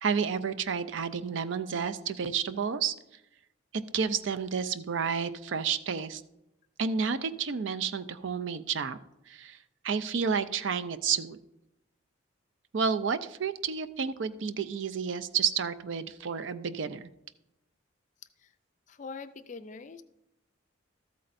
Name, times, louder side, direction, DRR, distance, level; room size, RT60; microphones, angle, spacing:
voice 1, 0.0-3.0 3.9-6.2 6.8-9.0 9.3-9.6 9.8-11.4 12.7-17.1, right 6 dB, 65° right, 12 dB, 0.4 m, -30 dB
voice 2, 18.9-20.0, left 4 dB, 35° left, 10 dB, 0.4 m, -43 dB
13.5 x 8.3 x 2.6 m, 0.89 s
head